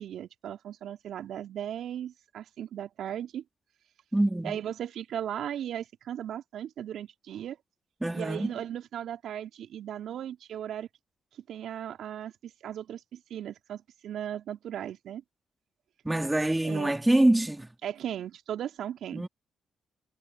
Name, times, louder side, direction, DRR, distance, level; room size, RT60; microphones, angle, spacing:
voice 1, 0.0-3.4 4.4-7.6 8.1-10.9 11.3-15.2 16.6-16.9 17.8-19.2, right 10 dB, 65° right, 2.4 m, -37 dB
voice 2, 4.1-4.6 8.0-8.5 16.0-17.7 19.1-19.3, right 1 dB, 15° right, 2.9 m, -25 dB
hypercardioid pair, 45°, 0 cm